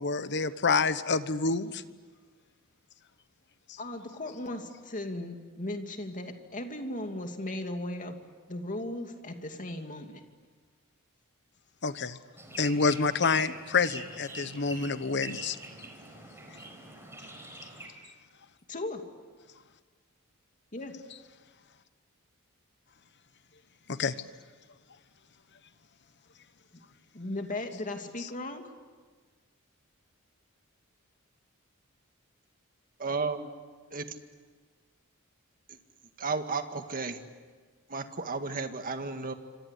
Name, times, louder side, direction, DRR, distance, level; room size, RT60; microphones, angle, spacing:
voice 1, 0.0-1.8 11.8-12.2 12.6-15.6 23.9-24.1, left 4 dB, 55° left, 13 dB, 1.1 m, -27 dB
voice 2, 3.8-8.2 8.5-10.2 17.3-17.4 18.7-19.0 20.7-20.9 26.7-26.8 27.1-28.6, left 1 dB, 40° left, 5 dB, 2.6 m, -37 dB
sound 1, 12.4-17.9, right 2 dB, 10° right, 4.8 m, -44 dB
voice 3, 33.0-33.5 33.9-34.1 35.7-35.8 36.2-37.2 37.9-39.3, right 4 dB, 40° right, 7 dB, 1.9 m, -33 dB
27.5 x 25.5 x 8.4 m, 1.5 s
head